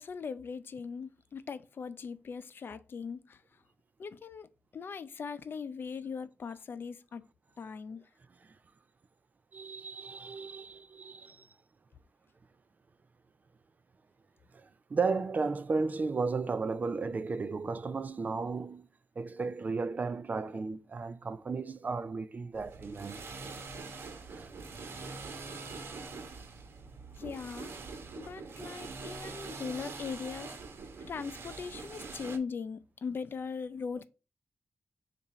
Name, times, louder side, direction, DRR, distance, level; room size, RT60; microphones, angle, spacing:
voice 1, 0.0-3.4 4.0-7.2 7.6-8.0 27.1-27.8 28.2-30.6 31.0-34.0, left 5 dB, 60° left, 0.5 m, -40 dB
voice 2, 9.5-11.5 14.5-18.9 19.2-23.2 24.3-24.6, right 4 dB, 45° right, 0.5 m, -34 dB
sound 1, 22.5-32.4, right 4 dB, 80° right, 1.0 m, -44 dB
7.0 x 2.6 x 5.6 m
wide cardioid pair, 105°, 4 cm